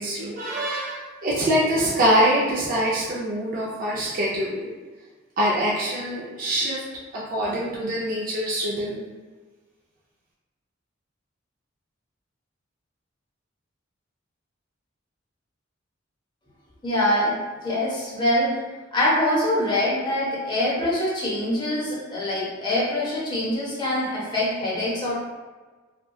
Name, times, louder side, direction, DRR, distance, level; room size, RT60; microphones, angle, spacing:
voice 1, 0.0-4.7 5.4-6.8 7.1-9.1, equal, 45° right, -5 dB, 0.4 m, -24 dB
voice 2, 16.8-18.6 18.9-25.1, left 1 dB, 25° left, -6 dB, 0.7 m, -24 dB
2.6 x 2.2 x 2.3 m, 1.3 s
head